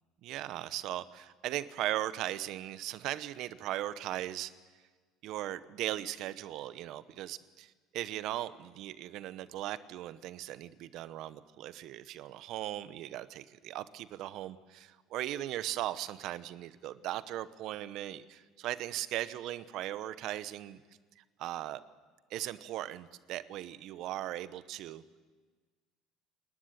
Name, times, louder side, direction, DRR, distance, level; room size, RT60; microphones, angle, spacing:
voice 1, 0.2-4.5 5.2-20.8 21.2-21.8 22.3-25.0, right 13 dB, 60° right, 15 dB, 0.9 m, -38 dB
26.5 x 12.0 x 9.8 m, 1.4 s
supercardioid pair, 115°, 0 cm